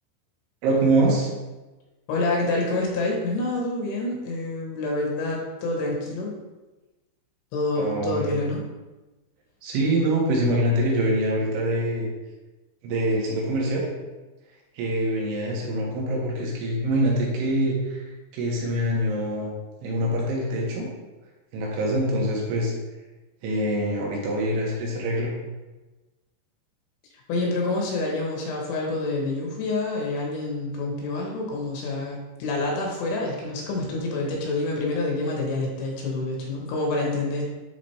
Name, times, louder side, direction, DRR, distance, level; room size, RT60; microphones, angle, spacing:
voice 1, 0.6-1.3 7.8-8.4 9.6-12.1 12.8-13.9 14.8-18.0 18.3-19.5 19.8-20.9 21.5-22.7 23.4-25.3, right 1 dB, 80° right, -3 dB, 3.7 m, -24 dB
voice 2, 2.1-6.4 7.5-8.6 27.3-37.5, left 2 dB, 75° left, -1 dB, 3.1 m, -27 dB
10.0 x 4.0 x 3.2 m, 1.1 s
omnidirectional pair, 5.5 m